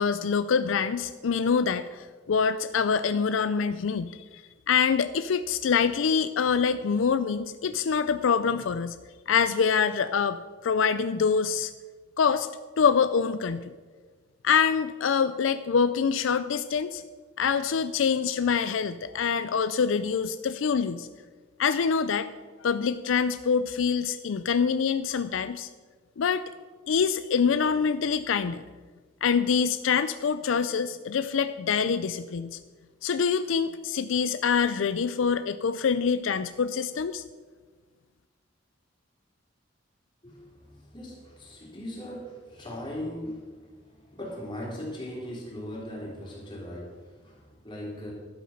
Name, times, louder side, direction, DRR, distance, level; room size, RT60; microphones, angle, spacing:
voice 1, 0.0-4.4 4.7-9.0 9.3-11.7 12.2-12.5 12.8-13.7 14.4-17.0 17.4-21.1 21.6-22.3 22.6-25.7 26.2-26.4 26.9-28.6 29.2-32.6 33.0-37.2, left 6 dB, 80° left, 12 dB, 0.4 m, -25 dB
voice 2, 40.2-48.1, left 1 dB, 25° left, -4 dB, 3.5 m, -39 dB
11.5 x 8.6 x 5.7 m, 1.4 s
head